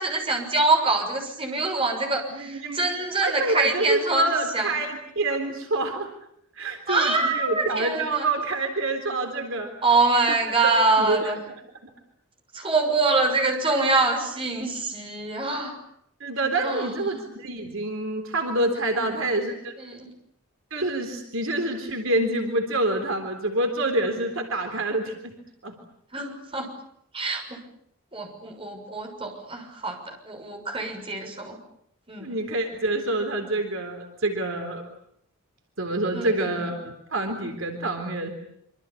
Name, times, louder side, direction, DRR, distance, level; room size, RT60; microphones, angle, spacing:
voice 1, 0.0-4.7 6.9-8.3 9.8-11.4 12.5-15.8 16.6-17.2 19.0-19.4 19.8-20.1 26.1-26.7 27.1-27.6 28.1-31.6 32.1-32.3 36.1-36.7, right 3 dB, 25° right, 3 dB, 6.5 m, -25 dB
voice 2, 2.3-2.8 3.2-6.1 6.6-9.7 10.3-10.4 11.0-11.3 16.2-19.7 20.7-25.4 25.6-25.8 32.2-34.8 35.8-38.3, right 2 dB, 60° right, 5 dB, 3.7 m, -27 dB
26.5 x 25.5 x 8.6 m, 0.72 s
head